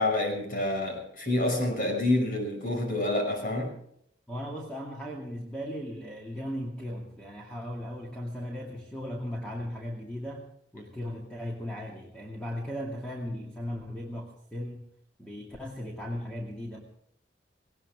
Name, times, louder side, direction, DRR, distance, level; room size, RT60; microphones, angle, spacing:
voice 1, 0.0-3.7, left 2 dB, 55° left, 3 dB, 5.9 m, -28 dB
voice 2, 4.3-10.5 10.7-14.9 15.2-16.8, equal, 5° left, -3 dB, 2.3 m, -37 dB
19.0 x 18.0 x 3.6 m, 0.69 s
head